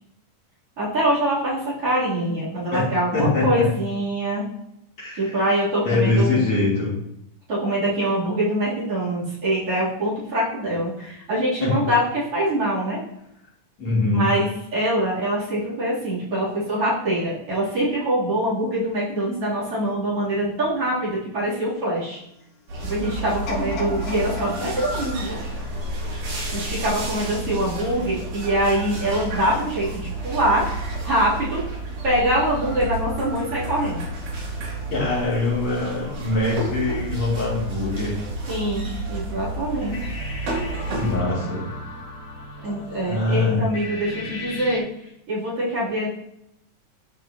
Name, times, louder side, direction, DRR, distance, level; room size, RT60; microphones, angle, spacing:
voice 1, 0.8-4.4 5.2-6.5 7.5-13.0 14.1-22.2 22.8-25.4 26.5-30.6 31.0-31.6 32.0-34.0 38.5-40.1 42.6-44.8 45.3-46.1, right 1 dB, 45° right, -9 dB, 3.9 m, -24 dB
voice 2, 3.1-3.7 5.0-5.4 5.8-7.0 11.6-11.7 13.8-14.3 34.9-38.2 39.9-40.0 40.9-41.6 43.1-43.6, left 2 dB, 55° left, -8 dB, 4.3 m, -23 dB
sound 1, 22.7-41.2, right 2 dB, 80° right, 4.2 m, -30 dB
sound 2, 23.5-26.5 27.1-27.2, left 3 dB, 85° left, 3.8 m, -35 dB
sound 3, 39.6-44.8, left 1 dB, 70° left, 3.7 m, -36 dB
12.5 x 5.2 x 2.9 m, 0.80 s
omnidirectional pair, 3.7 m